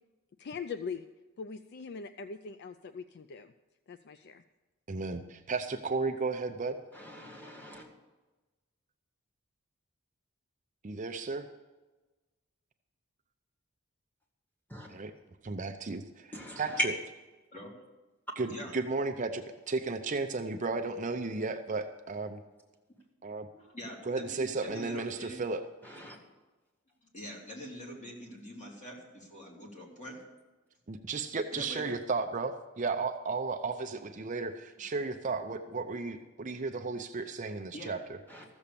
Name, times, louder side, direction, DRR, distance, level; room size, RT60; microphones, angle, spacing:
voice 1, 0.4-1.1 1.4-3.5 3.9-4.4, left 5 dB, 50° left, 11 dB, 0.4 m, -41 dB
voice 2, 4.9-6.8 10.8-11.4 14.9-15.1 15.4-16.0 16.6-16.9 18.4-22.4 23.2-23.5 24.1-25.6 30.9-38.0, right 3 dB, 35° right, 6 dB, 0.6 m, -34 dB
voice 3, 6.9-7.9 14.7-14.9 16.3-16.9 25.8-26.2 38.3-38.4, equal, 10° left, -1 dB, 2.0 m, -37 dB
voice 4, 23.5-25.4 27.0-30.2 31.5-31.8 37.7-37.9, equal, 35° left, -2 dB, 2.9 m, -44 dB
14.5 x 7.2 x 6.8 m, 1.2 s
head